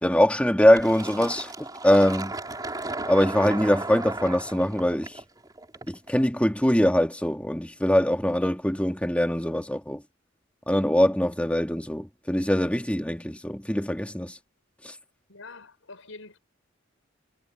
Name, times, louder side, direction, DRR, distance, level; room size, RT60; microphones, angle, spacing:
voice 1, 0.0-2.3 3.1-5.2 5.9-10.0 10.7-14.4 14.8-15.0, left 1 dB, 5° left, 1.9 m, -23 dB
Fill (with liquid), 0.8-6.2, right 2 dB, 20° right, 5.3 m, -35 dB
voice 2, 15.3-16.4, left 3 dB, 85° left, 5.1 m, -45 dB
head